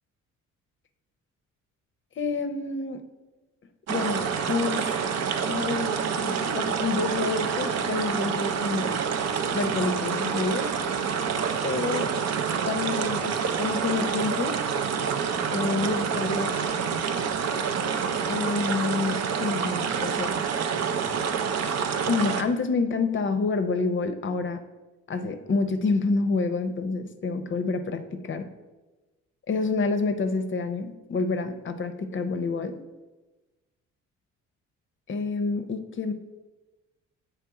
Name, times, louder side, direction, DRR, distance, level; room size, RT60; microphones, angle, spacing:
voice 1, 2.2-3.0 3.9-4.9 5.5-8.9 9.5-10.7 11.6-12.1 12.7-14.6 15.5-16.6 18.3-20.4 22.1-24.6 25.1-28.5 29.5-32.8 35.1-36.1, left 4 dB, 40° left, 9 dB, 0.6 m, -28 dB
sound 1, 3.9-22.4, right 6 dB, 60° right, 0.6 m, -27 dB
7.5 x 3.3 x 4.7 m, 1.1 s
cardioid pair, 90°, 30 cm